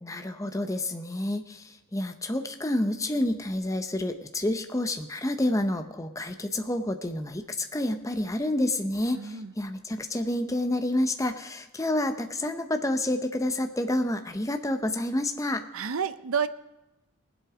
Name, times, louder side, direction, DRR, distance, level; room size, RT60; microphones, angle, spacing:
voice 1, 0.0-15.7, left 1 dB, 15° left, 7 dB, 0.7 m, -29 dB
voice 2, 9.1-9.5 15.7-16.5, right 7 dB, 70° right, 13 dB, 0.6 m, -29 dB
19.5 x 8.0 x 4.9 m, 1.0 s
head